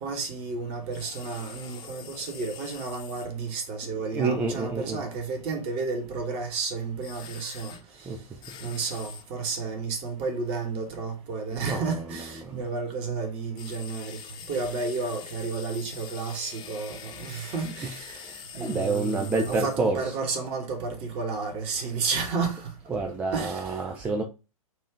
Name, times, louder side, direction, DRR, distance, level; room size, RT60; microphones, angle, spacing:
voice 1, 0.0-8.1 8.6-14.2 14.5-22.7 23.3-23.8, right 4 dB, 30° right, 1.4 m, -32 dB
sound 1, 0.9-3.3 7.0-7.8 8.4-9.2 13.6-19.8, left 7 dB, 25° left, 0.9 m, -44 dB
voice 2, 3.9-5.0 8.1-8.2 11.5-12.6 17.8-18.0 18.6-20.1 22.9-24.2, right 3 dB, 10° right, 0.3 m, -28 dB
4.4 x 2.7 x 4.5 m
figure-of-eight pair, 110°, 19 cm